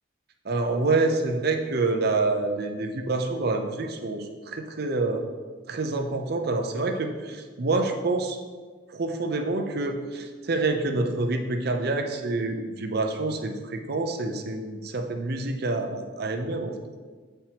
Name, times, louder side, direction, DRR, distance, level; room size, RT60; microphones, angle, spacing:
voice 1, 0.4-5.2 5.7-8.4 8.9-16.7, right 3 dB, 55° right, 5 dB, 0.6 m, -27 dB
8.7 x 4.5 x 2.9 m, 1.5 s
head